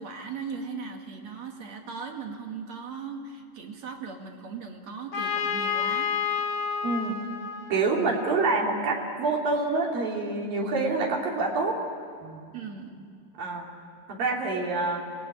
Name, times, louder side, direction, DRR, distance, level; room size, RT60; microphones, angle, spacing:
voice 1, 0.0-6.1 7.9-8.2 10.4-10.7 12.5-13.1, right 5 dB, 55° right, 3 dB, 3.1 m, -38 dB
Trumpet, 5.1-8.9, left 7 dB, 45° left, 2.6 m, -30 dB
voice 2, 6.8-7.2 7.7-11.8 12.2-12.4 13.4-13.7 14.1-15.0, right 3 dB, 85° right, -1 dB, 4.6 m, -27 dB
28.0 x 21.0 x 9.9 m, 2.3 s
omnidirectional pair, 3.9 m